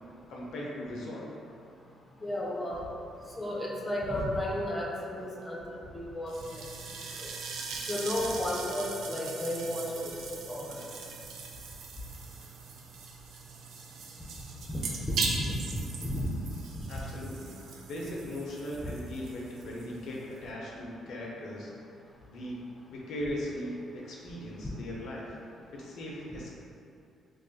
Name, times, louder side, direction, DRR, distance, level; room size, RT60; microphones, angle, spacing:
voice 1, 0.3-1.3 16.9-17.6 17.8-21.7 22.3-25.2 25.7-26.5, left 1 dB, 75° left, -3 dB, 0.5 m, -38 dB
voice 2, 2.2-2.8 3.4-6.6 7.2-7.3 7.9-10.8 14.7-14.8 15.1-15.6 16.0-16.3 16.7-16.8 18.8-18.9, left 1 dB, 20° left, -3 dB, 0.5 m, -33 dB
sound 1, 6.3-20.5, right 4 dB, 80° right, 0.3 m, -40 dB
2.5 x 2.3 x 3.8 m, 2.6 s
cardioid pair, 90°, 0 cm